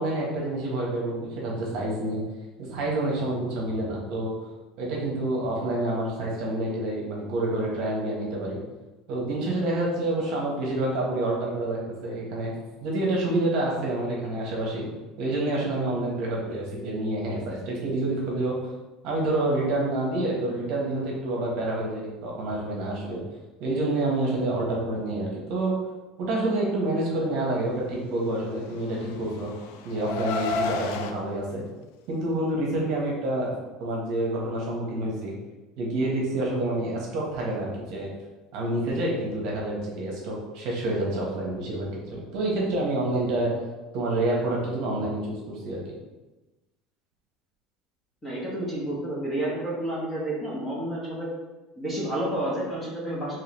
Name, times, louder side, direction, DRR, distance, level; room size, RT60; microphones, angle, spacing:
voice 1, 0.0-2.2 2.6-4.3 4.8-8.6 9.1-12.5 12.8-14.9 15.2-18.6 19.0-23.2 23.6-25.7 26.2-29.5 29.8-31.6 32.1-35.3 35.8-38.1 38.5-43.5 43.9-45.8, right 1 dB, 50° right, -2 dB, 1.0 m, -28 dB
Car, 28.6-31.1, left 3 dB, 75° left, 0.3 m, -31 dB
voice 2, 48.2-51.3 51.8-53.4, right 1 dB, 10° left, -5 dB, 0.8 m, -30 dB
3.8 x 3.0 x 3.0 m, 1.1 s
cardioid pair, 175°, 0 cm